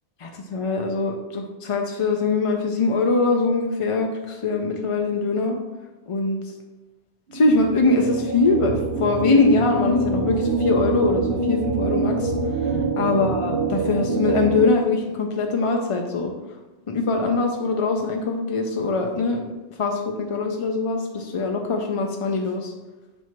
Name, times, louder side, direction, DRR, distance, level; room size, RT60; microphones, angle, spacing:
voice 1, 0.2-5.6 6.1-6.4 7.3-12.3 12.6-16.3 16.9-19.5 19.8-22.7, left 3 dB, 50° left, 3 dB, 0.4 m, -22 dB
sound 1, 7.3-14.7, right 3 dB, 55° right, 0.8 m, -25 dB
7.3 x 2.7 x 5.9 m, 1.1 s
omnidirectional pair, 1.1 m